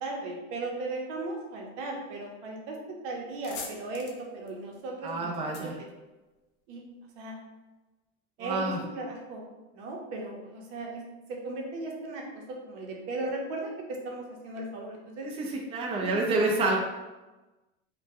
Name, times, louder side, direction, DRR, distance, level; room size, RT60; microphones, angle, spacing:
voice 1, 0.0-5.4 5.6-5.9 6.7-6.8 7.2-7.4 8.4-9.4 9.7-15.3 15.9-16.1 16.6-16.8, right 2 dB, 80° right, 0 dB, 0.7 m, -37 dB
sound 1, 2.7-2.8 3.2-6.8, left 5 dB, 65° left, 0.6 m, -45 dB
voice 2, 5.0-5.8 8.4-8.8 15.2-16.8, right 2 dB, 20° right, -1 dB, 0.4 m, -28 dB
2.2 x 2.2 x 2.7 m, 1.1 s
supercardioid pair, 110°, 35 cm